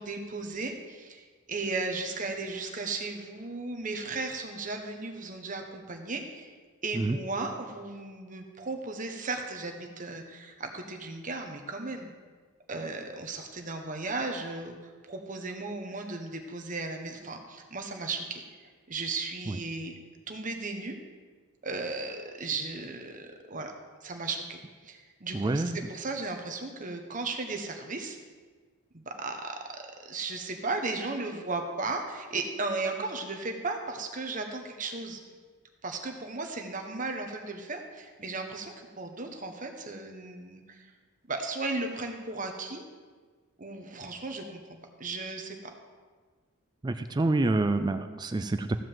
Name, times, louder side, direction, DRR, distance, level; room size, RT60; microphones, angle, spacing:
voice 1, 0.0-6.5 6.8-12.1 12.7-14.8 15.1-18.4 18.9-19.9 20.3-21.0 21.6-23.7 24.0-28.2 28.9-35.2 35.8-40.9 41.3-42.9 43.6-45.7, right 3 dB, 35° right, 4 dB, 1.1 m, -35 dB
voice 2, 25.3-25.8 46.8-48.8, right 2 dB, 20° right, 9 dB, 0.3 m, -27 dB
14.0 x 5.0 x 7.6 m, 1.5 s
head